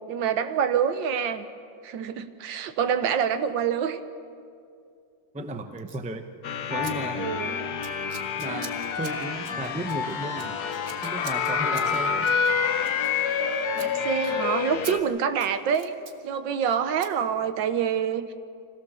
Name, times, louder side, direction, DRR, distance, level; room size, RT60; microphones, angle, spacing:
voice 1, 0.1-1.5 1.8-4.0 7.2-7.7 13.7-15.9 16.2-18.3, right 8 dB, 85° right, 10 dB, 1.7 m, -26 dB
voice 2, 5.3-6.3 6.7-7.3 8.4-10.5 11.0-12.3, right 1 dB, 10° right, 7 dB, 0.4 m, -34 dB
Scissors, 5.8-6.1 6.8-6.9 7.2-7.5 7.8-13.5 13.7-13.9 14.2-14.3 14.8-14.9 15.3-16.2 17.0-17.1, right 5 dB, 50° right, 1.5 m, -44 dB
sound 1, 6.4-15.0, left 6 dB, 60° left, 1.4 m, -28 dB
25.5 x 17.0 x 6.8 m, 2.4 s
omnidirectional pair, 2.0 m